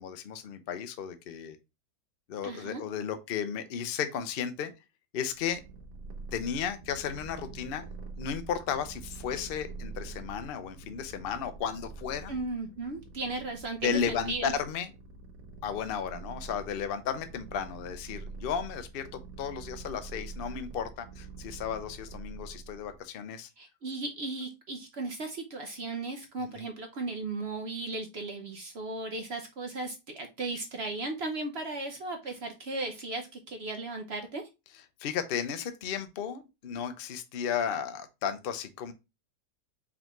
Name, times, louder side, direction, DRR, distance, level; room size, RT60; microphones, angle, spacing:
voice 1, 0.0-1.6 2.3-4.7 5.1-5.6 6.3-12.4 13.8-14.9 15.6-19.1 19.4-23.5 26.4-26.7 35.0-38.9, left 7 dB, 60° left, 0.6 m, -34 dB
voice 2, 2.4-2.8 12.3-14.5 23.6-34.4, right 2 dB, 60° right, 0.7 m, -36 dB
Purr, 5.3-23.0, right 3 dB, 40° right, 1.0 m, -45 dB
4.8 x 3.5 x 2.9 m
omnidirectional pair, 1.8 m